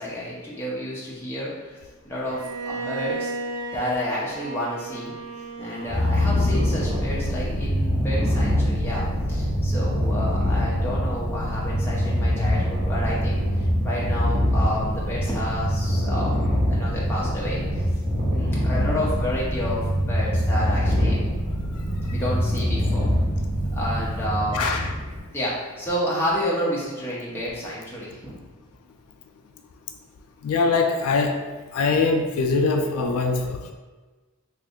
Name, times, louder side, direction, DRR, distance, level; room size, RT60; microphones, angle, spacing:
voice 1, 0.0-1.8 2.0-3.3 3.7-5.1 5.6-16.3 16.7-17.8 18.3-21.2 22.1-23.1 23.7-24.6 25.3-28.4, equal, 10° left, -7 dB, 0.7 m, -30 dB
Bowed string instrument, 2.3-7.3, right 2 dB, 90° right, 1.0 m, -35 dB
Purr, 5.9-25.2, equal, 35° right, 1.1 m, -24 dB
voice 2, 30.4-31.4 31.7-33.7, left 4 dB, 80° left, 4 dB, 0.3 m, -22 dB
3.1 x 2.5 x 3.6 m, 1.3 s
head